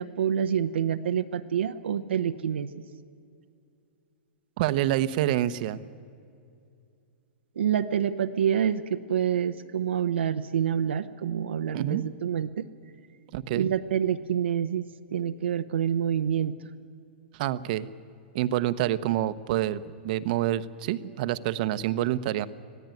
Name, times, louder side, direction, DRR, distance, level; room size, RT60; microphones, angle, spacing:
voice 1, 0.0-2.7 7.6-12.6 13.5-14.8 15.1-16.6, right 9 dB, 90° right, 7 dB, 0.9 m, -27 dB
voice 2, 4.6-5.8 11.7-12.0 13.3-13.7 17.3-17.9 18.3-22.5, right 13 dB, 50° right, 13 dB, 1.0 m, -27 dB
25.5 x 17.0 x 9.4 m, 2.5 s
hypercardioid pair, 145°, 6 cm